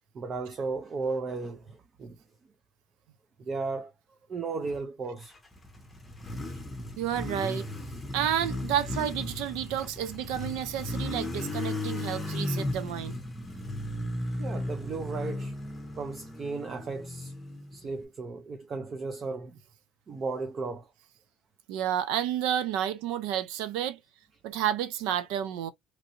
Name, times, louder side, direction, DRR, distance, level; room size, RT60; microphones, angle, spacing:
voice 1, 0.1-2.2 3.4-3.9 4.3-5.3 8.9-9.0 12.1-12.2 14.4-15.5 16.0-17.3 17.7-19.6 20.1-20.9, right 4 dB, 35° right, 0.6 m, -35 dB
Motorcycle, 5.3-18.0, left 1 dB, 10° left, 0.9 m, -35 dB
voice 2, 7.0-7.7 8.1-13.2 21.7-24.0 24.4-25.7, right 10 dB, 90° right, 0.6 m, -30 dB
3.0 x 2.7 x 2.6 m
cardioid pair, 115°, 0 cm